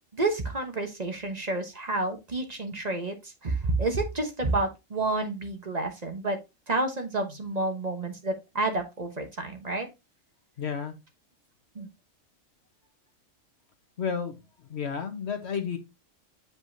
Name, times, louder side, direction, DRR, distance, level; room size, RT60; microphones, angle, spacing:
voice 1, 0.1-6.4 6.7-9.9 11.7-11.9, right 2 dB, 35° right, 5 dB, 1.1 m, -29 dB
voice 2, 10.6-10.9 14.0-14.4 14.7-15.8, left 6 dB, 55° left, 7 dB, 1.4 m, -31 dB
7.9 x 5.4 x 2.7 m, 0.23 s
omnidirectional pair, 1.3 m